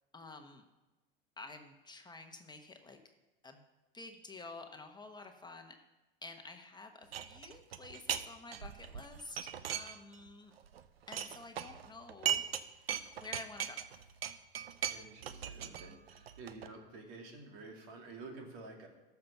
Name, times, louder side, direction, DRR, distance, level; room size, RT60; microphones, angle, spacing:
voice 1, 0.1-0.6 1.4-3.0 3.4-3.6 3.9-5.8 6.2-10.5 11.1-12.9 13.2-14.0, left 3 dB, 15° left, 4 dB, 1.1 m, -50 dB
sound 1, 7.1-8.3 8.5-10.3 10.6-12.6 12.9-16.7, right 9 dB, 85° right, 0.7 m, -38 dB
voice 2, 14.9-18.9, right 3 dB, 60° right, 2 dB, 2.6 m, -50 dB
13.5 x 5.9 x 5.9 m, 1.1 s
hypercardioid pair, 95°, 29 cm